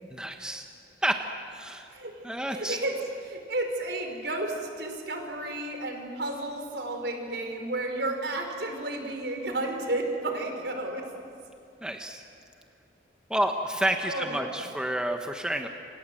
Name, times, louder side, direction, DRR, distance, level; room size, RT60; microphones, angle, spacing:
voice 1, 0.1-0.6 1.0-1.2 1.5-1.9 2.2-2.8 11.8-12.2 13.3-15.7, right 1 dB, 5° right, 4 dB, 1.2 m, -29 dB
voice 2, 1.9-2.2 2.5-11.1 14.0-14.6, right 2 dB, 70° right, 4 dB, 4.6 m, -32 dB
28.5 x 27.0 x 7.7 m, 2.6 s
head